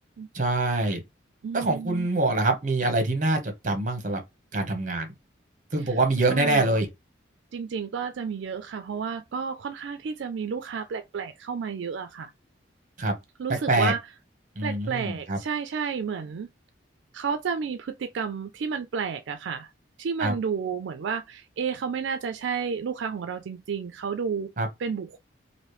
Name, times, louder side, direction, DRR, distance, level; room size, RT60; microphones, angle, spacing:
voice 1, 0.3-1.0 1.5-3.4 3.6-4.2 4.5-5.1 5.7-6.9 13.0-13.1 13.7-13.9 14.6-15.4 20.2-20.3 24.6-24.7, right 2 dB, 40° right, 0.9 m, -24 dB
voice 2, 1.4-2.1 5.8-6.0 6.3-6.8 7.5-12.3 13.4-14.0 14.6-16.5 17.1-19.7 20.0-24.5 24.8-25.2, right 6 dB, 75° right, 0.4 m, -31 dB
3.0 x 2.6 x 3.1 m
head